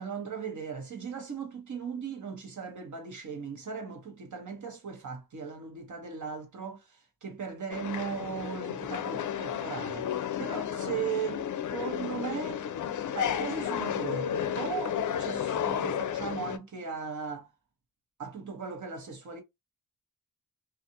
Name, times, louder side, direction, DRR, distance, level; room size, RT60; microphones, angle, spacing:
voice 1, 0.0-12.6 13.1-17.5 18.2-19.4, right 6 dB, 55° right, 1.1 m, -38 dB
sound 1, 7.7-16.6, left 9 dB, 60° left, 0.4 m, -32 dB
2.5 x 2.5 x 2.7 m
wide cardioid pair, 105°, 36 cm